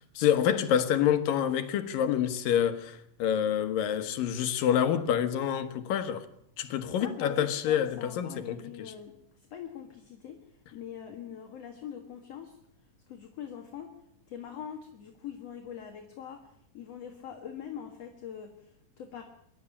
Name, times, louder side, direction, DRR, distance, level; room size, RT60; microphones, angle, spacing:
voice 1, 0.2-6.3 6.6-8.9, left 9 dB, 80° left, 3.0 m, -27 dB
voice 2, 6.7-12.6 13.1-13.9 14.3-19.2, left 8 dB, 55° left, 2.6 m, -43 dB
24.5 x 12.0 x 10.0 m
omnidirectional pair, 3.9 m